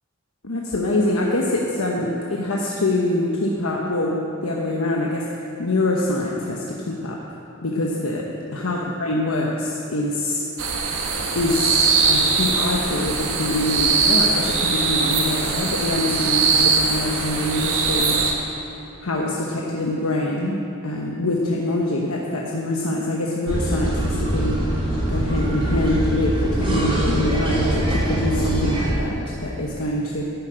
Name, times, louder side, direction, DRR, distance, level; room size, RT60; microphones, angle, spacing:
voice 1, 0.4-10.4 11.3-18.2 19.0-24.6 25.1-30.2, left 2 dB, 80° left, -2 dB, 1.1 m, -24 dB
sound 1, 10.6-18.3, right 4 dB, 85° right, 1.5 m, -21 dB
sound 2, 23.5-28.9, right 1 dB, 25° right, 3.2 m, -23 dB
12.0 x 7.6 x 8.8 m, 2.9 s
head